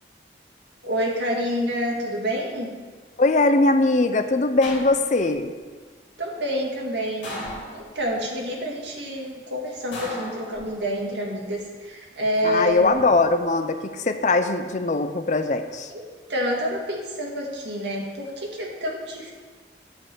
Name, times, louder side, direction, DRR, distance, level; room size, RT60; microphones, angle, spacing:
voice 1, 0.8-2.7 6.2-7.3 7.7-12.9 15.9-16.0 16.3-19.3, equal, 75° right, -1 dB, 1.9 m, -28 dB
voice 2, 3.2-5.5 12.4-15.9, left 2 dB, 40° left, 8 dB, 0.5 m, -21 dB
sound 1, 4.6-5.4 7.2-8.2 9.9-11.1 12.5-13.0, left 1 dB, 80° left, 2.2 m, -37 dB
8.5 x 5.4 x 7.4 m, 1.5 s
head